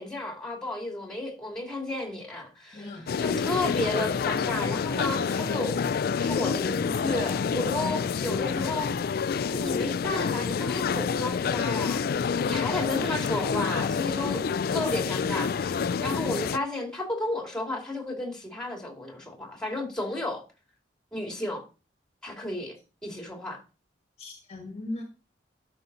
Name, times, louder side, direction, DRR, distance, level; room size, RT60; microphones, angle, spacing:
voice 1, 0.0-5.8 6.2-14.4 14.7-20.4 21.1-21.6 22.2-22.8 23.0-23.6, left 2 dB, 5° left, 2.5 m, -33 dB
voice 2, 2.7-3.1 7.8-8.1 24.2-25.0, left 2 dB, 35° left, 1.6 m, -38 dB
sound 1, 3.1-16.6, left 6 dB, 55° left, 0.4 m, -28 dB
12.0 x 5.7 x 3.9 m
head